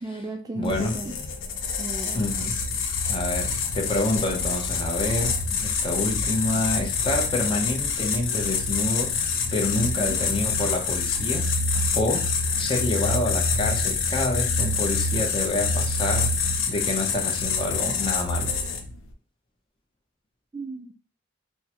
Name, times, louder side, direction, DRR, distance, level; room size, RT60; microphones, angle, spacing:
voice 1, 0.0-1.2 1.8-2.2 9.8-10.2 20.5-20.9, right 2 dB, 20° right, 0.3 m, -34 dB
sound 1, 0.6-19.0, left 4 dB, 80° left, 0.5 m, -26 dB
voice 2, 0.6-1.0 2.1-2.8 3.1-9.2 9.5-11.5 11.9-12.3 12.6-16.3 16.7-18.6, left 1 dB, 25° left, 0.7 m, -28 dB
3.6 x 2.1 x 2.9 m
head